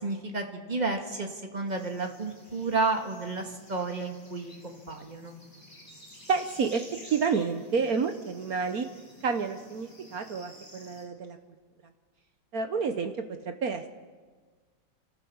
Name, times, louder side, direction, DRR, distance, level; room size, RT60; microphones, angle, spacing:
voice 1, 0.0-5.3, right 3 dB, 20° right, 4 dB, 1.7 m, -31 dB
sound 1, 1.7-11.1, equal, 10° left, 4.0 m, -52 dB
voice 2, 6.3-6.8 7.1-8.9 9.2-11.4 12.5-13.1 13.4-13.9, right 5 dB, 55° right, 8 dB, 1.2 m, -29 dB
28.5 x 13.5 x 7.1 m, 1.5 s
omnidirectional pair, 2.2 m